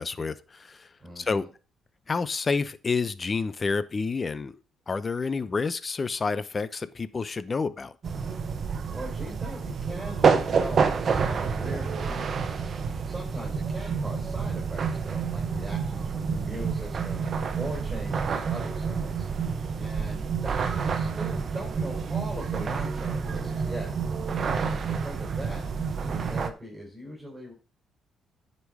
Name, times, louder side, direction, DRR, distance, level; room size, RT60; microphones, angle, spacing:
voice 1, 0.0-1.5 2.1-4.5 4.9-7.9 19.8-19.9, left 4 dB, 35° left, 0.7 m, -29 dB
voice 2, 1.0-1.5 8.5-8.6 8.9-12.7 13.0-17.2 17.5-19.3 19.8-23.9 24.5-25.6 26.0-27.5, right 1 dB, 15° right, 4.4 m, -40 dB
sound 1, 8.0-26.5, right 5 dB, 50° right, 1.0 m, -28 dB
9.9 x 5.3 x 4.8 m
cardioid pair, 90°, 0 cm